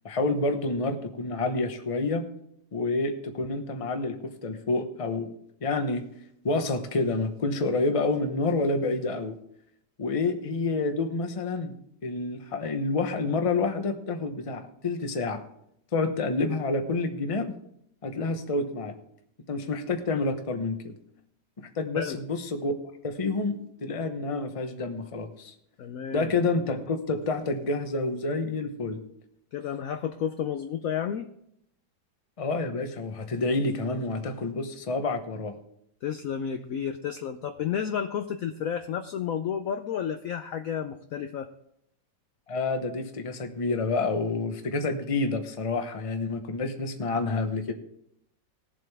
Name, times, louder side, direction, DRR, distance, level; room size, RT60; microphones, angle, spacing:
voice 1, 0.0-2.2 2.7-5.3 5.6-6.0 6.4-9.4 10.0-11.7 12.0-15.4 15.9-17.5 18.0-18.9 19.5-21.0 21.8-22.7 23.0-25.5 26.1-29.0 32.4-35.5 42.5-47.7, left 3 dB, 25° left, 7 dB, 0.8 m, -28 dB
voice 2, 25.8-26.3 29.5-31.3 36.0-41.5, left 8 dB, 70° left, 8 dB, 0.8 m, -31 dB
19.0 x 7.6 x 3.4 m, 0.74 s
omnidirectional pair, 1.9 m